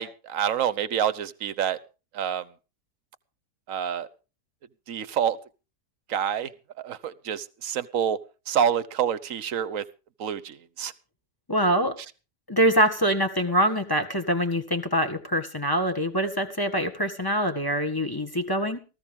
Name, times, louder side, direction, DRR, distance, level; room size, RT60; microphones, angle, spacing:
voice 1, 0.0-1.8 2.1-2.5 3.7-4.1 4.9-5.4 6.1-6.5 6.8-8.2 8.5-9.8 10.2-10.9, right 8 dB, 55° right, 15 dB, 1.3 m, -27 dB
voice 2, 11.5-12.0 12.5-18.8, equal, 15° left, 6 dB, 1.7 m, -24 dB
18.5 x 15.0 x 3.7 m, 0.34 s
omnidirectional pair, 1.8 m